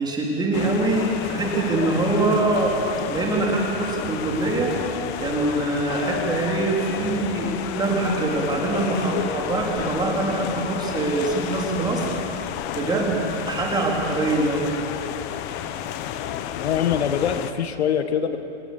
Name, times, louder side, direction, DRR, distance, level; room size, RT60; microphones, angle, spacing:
voice 1, 0.0-2.8 3.1-4.8 5.2-12.5 12.8-14.6, right 2 dB, 10° right, -1 dB, 3.6 m, -24 dB
sound 1, 0.5-17.5, left 10 dB, 30° left, 1.0 m, -31 dB
voice 2, 16.6-18.4, left 8 dB, 65° left, 9 dB, 1.6 m, -23 dB
25.5 x 19.5 x 7.0 m, 2.7 s
hypercardioid pair, 140°, 34 cm